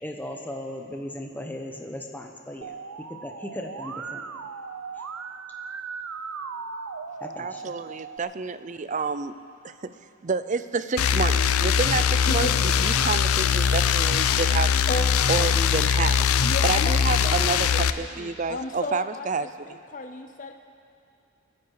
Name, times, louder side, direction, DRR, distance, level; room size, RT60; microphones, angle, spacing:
voice 1, 0.0-2.7 3.1-4.2 4.9-5.0 7.2-7.6, left 1 dB, 10° left, 2 dB, 1.0 m, -37 dB
Musical instrument, 2.6-8.2, right 5 dB, 85° right, 0.8 m, -37 dB
voice 2, 7.4-9.3 9.6-9.9 10.2-14.7 15.3-16.3 16.6-19.8, right 4 dB, 35° right, 13 dB, 0.4 m, -29 dB
sound 1, 11.0-17.9, left 7 dB, 90° left, 0.5 m, -21 dB
sound 2, 11.7-17.4, left 1 dB, 65° left, 3.1 m, -49 dB
voice 3, 16.4-17.9 18.2-20.5, left 2 dB, 35° left, 6 dB, 0.6 m, -34 dB
29.0 x 9.7 x 4.8 m, 2.6 s
head